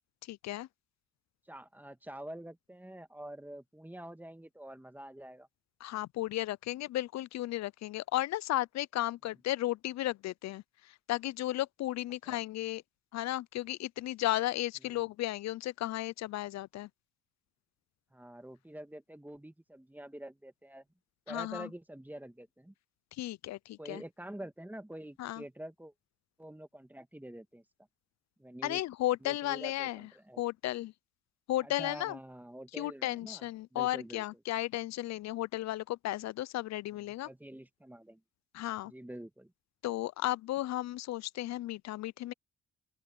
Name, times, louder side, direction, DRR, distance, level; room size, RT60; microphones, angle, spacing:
voice 1, 0.2-0.7 5.8-12.8 13.1-16.9 21.3-21.7 23.2-24.0 25.2-25.4 28.6-30.1 30.4-30.9 31.5-32.2 32.8-37.3 38.5-38.9 39.8-42.3, left 15 dB, 65° left, 0.5 m, -34 dB
voice 2, 1.5-5.5 12.3-12.4 14.8-15.1 18.1-20.8 21.3-22.7 23.8-25.9 26.4-27.6 28.4-28.8 29.2-30.4 31.6-34.2 37.2-38.2 38.8-39.5, right 1 dB, 5° right, 1.8 m, -47 dB
open air
cardioid pair, 90°, 30 cm